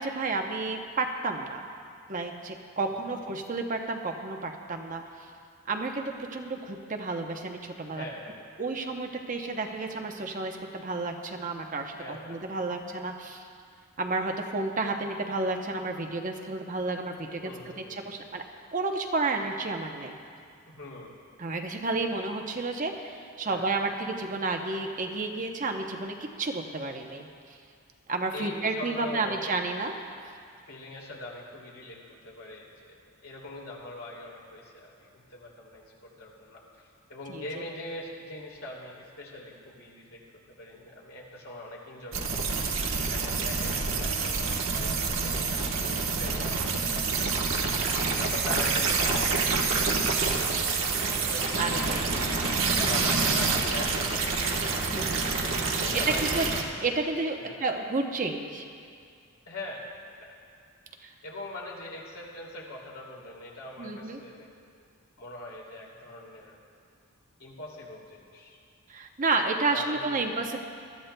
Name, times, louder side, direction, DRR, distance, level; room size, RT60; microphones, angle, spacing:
voice 1, 0.0-1.6 2.1-5.0 5.7-8.0 8.6-13.4 14.0-17.5 17.9-18.4 18.7-20.2 21.4-27.3 28.1-29.9 37.3-37.4 43.4-43.7 48.5-48.6 51.6-51.9 54.8-55.2 55.9-56.5 56.8-58.6 61.0-61.1 63.8-64.2 68.9-70.6, right 3 dB, 35° right, 3 dB, 0.7 m, -31 dB
voice 2, 7.9-8.4 12.0-12.4 17.4-18.0 20.7-21.2 23.4-23.8 28.3-29.5 30.7-42.5 43.1-47.4 48.2-52.0 52.7-56.6 57.4-57.7 59.5-59.9 60.2-60.4 61.2-64.5 65.2-66.6 67.4-68.6 69.7-70.4, left 2 dB, 75° left, -3 dB, 2.6 m, -42 dB
sound 1, 42.1-56.6, right 4 dB, 60° right, 1.2 m, -27 dB
21.5 x 13.0 x 2.2 m, 2.3 s
head